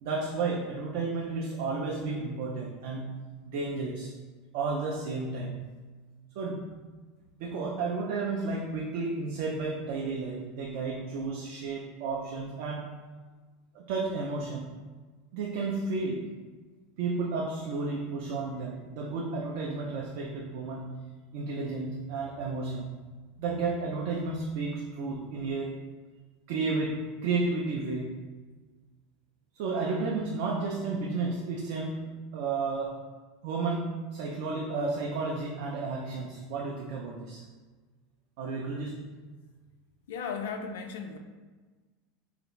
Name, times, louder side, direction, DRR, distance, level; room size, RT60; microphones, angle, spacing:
voice 1, 0.0-3.1 3.4-4.1 4.5-5.6 6.4-6.7 7.4-12.9 13.7-14.7 15.3-16.3 17.0-20.9 21.3-22.9 23.4-25.8 26.5-28.2 29.5-33.0 33.4-37.4 38.4-39.0, right 3 dB, 50° right, -1 dB, 0.3 m, -32 dB
voice 2, 40.1-41.2, left 5 dB, 85° left, 5 dB, 0.3 m, -36 dB
3.2 x 2.4 x 3.0 m, 1.4 s
supercardioid pair, 175°, 0 cm